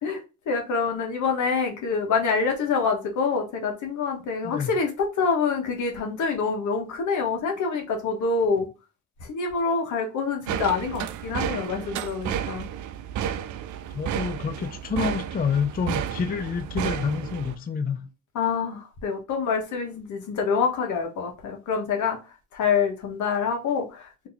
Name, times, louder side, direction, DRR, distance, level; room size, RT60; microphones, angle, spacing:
voice 1, 0.0-8.7 9.3-12.7 18.3-22.2 22.5-24.3, left 5 dB, 75° left, 1.3 m, -26 dB
sound 1, 10.5-17.6, right 9 dB, 75° right, 0.5 m, -32 dB
voice 2, 13.9-18.1, left 6 dB, 30° left, 0.4 m, -28 dB
2.9 x 2.7 x 4.0 m
cardioid pair, 90°, 30 cm